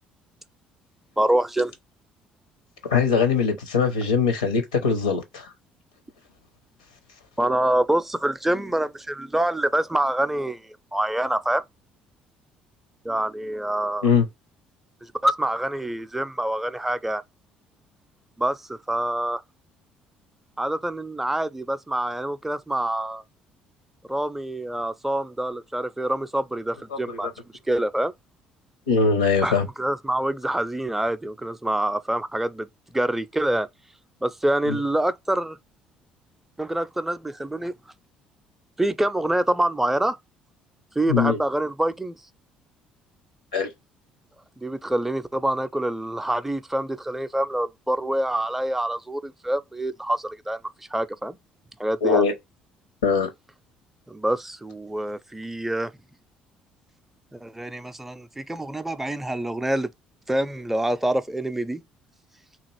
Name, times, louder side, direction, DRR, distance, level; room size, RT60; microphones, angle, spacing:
voice 1, 1.2-1.7 7.4-11.6 13.0-14.1 15.0-17.2 18.4-19.4 20.6-23.2 24.1-27.3 27.7-28.1 29.4-32.7 32.9-33.7 34.2-35.6 36.6-37.7 38.8-40.2 41.0-42.2 44.6-50.6 50.9-51.4 51.8-52.3 54.1-55.9 57.3-59.9 60.3-61.8, right 1 dB, 5° right, 0.4 m, -26 dB
voice 2, 2.8-5.5 14.0-14.2 26.9-27.3 28.9-29.7 34.7-34.8 41.1-41.4 43.5-43.7 52.0-52.3 53.0-53.3, left 5 dB, 80° left, 0.7 m, -21 dB
2.8 x 2.4 x 3.1 m
figure-of-eight pair, 50°, 4 cm